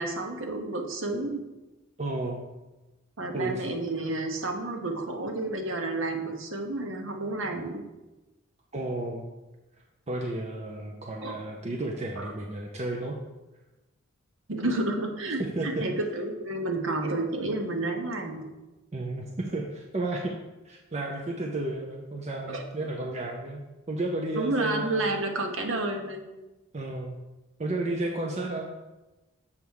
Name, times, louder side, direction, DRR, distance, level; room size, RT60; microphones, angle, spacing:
voice 1, 0.0-1.4 3.2-7.8 11.2-11.4 12.2-12.3 14.5-18.4 22.5-22.6 24.4-26.2, right 2 dB, 80° right, 3 dB, 1.1 m, -30 dB
voice 2, 2.0-2.4 3.3-3.6 8.7-9.3 10.1-13.2 15.4-15.8 18.9-20.4 20.6-23.6 23.9-25.1 26.7-27.2 27.6-28.7, right 2 dB, 35° right, 0 dB, 0.6 m, -32 dB
7.1 x 3.5 x 6.3 m, 1.1 s
head